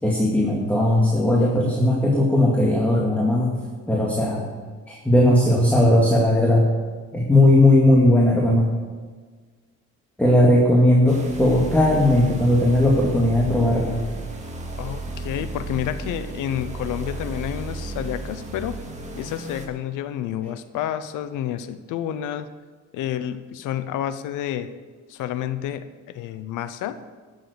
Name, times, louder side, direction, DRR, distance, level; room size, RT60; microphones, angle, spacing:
voice 1, 0.0-3.5 3.9-4.4 4.9-6.7 7.1-8.7 10.2-14.0, left 1 dB, 5° left, -3 dB, 2.2 m, -18 dB
sound 1, 11.1-19.7, right 2 dB, 25° right, 2.2 m, -33 dB
voice 2, 14.8-18.8 19.1-22.5 22.9-24.7 25.1-26.9, left 10 dB, 90° left, 13 dB, 0.8 m, -29 dB
12.0 x 7.6 x 6.9 m, 1.5 s
cardioid pair, 90°, 30 cm